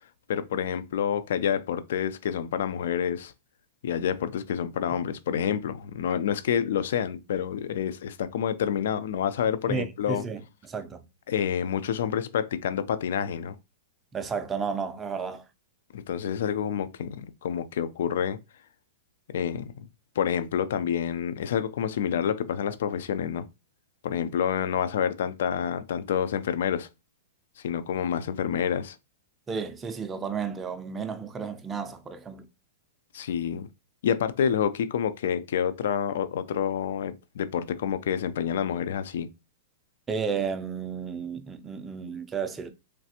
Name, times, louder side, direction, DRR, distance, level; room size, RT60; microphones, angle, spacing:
voice 1, 0.3-3.3 3.8-10.2 11.3-13.6 15.9-18.4 19.3-19.8 20.2-23.5 24.0-26.9 27.6-29.0 33.1-33.7 34.0-39.3, left 8 dB, 70° left, 0.3 m, -28 dB
voice 2, 9.7-11.0 14.1-15.4 29.5-32.5 40.1-42.7, right 6 dB, 15° right, 0.4 m, -32 dB
3.2 x 2.4 x 2.8 m
hypercardioid pair, 150°, 0 cm